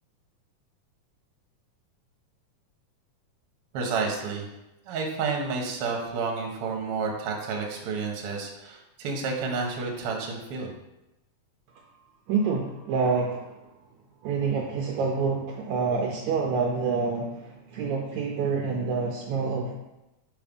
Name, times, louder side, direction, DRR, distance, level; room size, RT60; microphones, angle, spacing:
voice 1, 3.7-4.5 4.9-10.7, right 4 dB, 60° right, 0 dB, 1.7 m, -30 dB
voice 2, 12.3-13.7 14.2-19.7, right 5 dB, 75° right, 0 dB, 1.8 m, -27 dB
5.4 x 4.9 x 5.3 m, 0.96 s
omnidirectional pair, 3.7 m